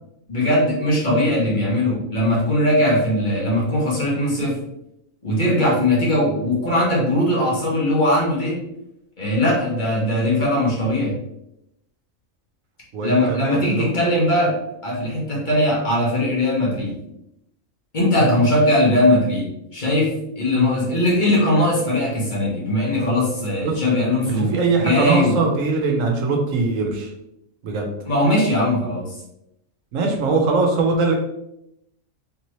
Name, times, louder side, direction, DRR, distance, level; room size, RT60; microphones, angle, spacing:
voice 1, 0.3-4.6 5.2-8.6 9.2-11.1 13.0-16.9 17.9-19.5 19.7-24.5 24.8-25.4 28.0-29.2, left 1 dB, 35° left, -5 dB, 1.3 m, -20 dB
voice 2, 12.9-13.9 18.2-18.3 20.5-20.7 23.6-23.7 24.4-27.1 27.6-27.9 29.9-31.1, right 3 dB, 75° right, 2 dB, 1.1 m, -21 dB
3.6 x 2.9 x 3.0 m, 0.82 s
omnidirectional pair, 1.4 m